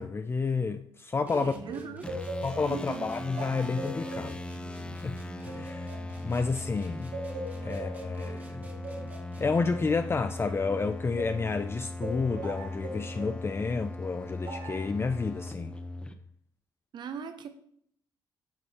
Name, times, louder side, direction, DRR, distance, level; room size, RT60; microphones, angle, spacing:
voice 1, 0.0-1.5 2.4-4.4 5.0-5.2 5.4-5.9 6.2-7.1 7.6-8.7 9.4-15.7, left 4 dB, 30° left, 0.5 m, -30 dB
sound 1, 1.3-9.7, right 1 dB, 20° right, 1.6 m, -48 dB
voice 2, 1.3-2.1 2.7-3.1 16.9-17.5, right 6 dB, 60° right, 1.0 m, -39 dB
sound 2, 1.7-6.7 7.1-11.5 12.0-13.4 14.4-14.9, right 2 dB, 80° right, 2.3 m, -41 dB
sound 3, 2.0-16.1, left 1 dB, 10° left, 0.9 m, -39 dB
9.5 x 4.9 x 4.3 m
supercardioid pair, 70°, 9 cm